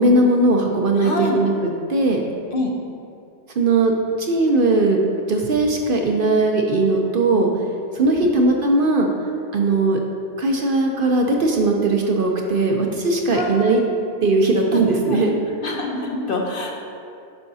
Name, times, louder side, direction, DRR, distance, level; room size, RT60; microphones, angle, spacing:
voice 1, 0.0-1.5 1.9-2.2 3.6-3.9 4.2-5.0 5.3-7.5 7.9-9.1 9.5-10.0 10.4-13.8 14.2-15.3, right 2 dB, 55° right, 1 dB, 0.7 m, -18 dB
voice 2, 1.0-1.4 2.5-2.7 8.1-8.3 13.3-13.7 14.7-15.2 15.6-16.7, left 2 dB, 55° left, -1 dB, 1.0 m, -26 dB
9.9 x 5.7 x 2.7 m, 2.4 s
omnidirectional pair, 1.2 m